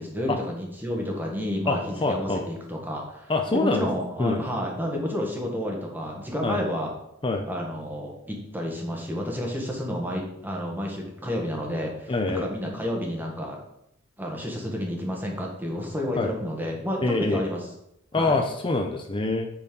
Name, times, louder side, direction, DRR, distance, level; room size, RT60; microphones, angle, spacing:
voice 1, 0.0-6.9 7.5-13.6 14.2-17.6 18.1-18.4, equal, 10° right, 0 dB, 1.6 m, -30 dB
voice 2, 1.7-2.4 3.3-3.9 4.2-4.4 6.4-6.6 7.2-7.4 12.1-12.5 16.2-16.3 17.0-17.4 18.1-19.5, left 2 dB, 25° left, 4 dB, 0.6 m, -25 dB
8.5 x 4.4 x 5.3 m, 0.79 s
head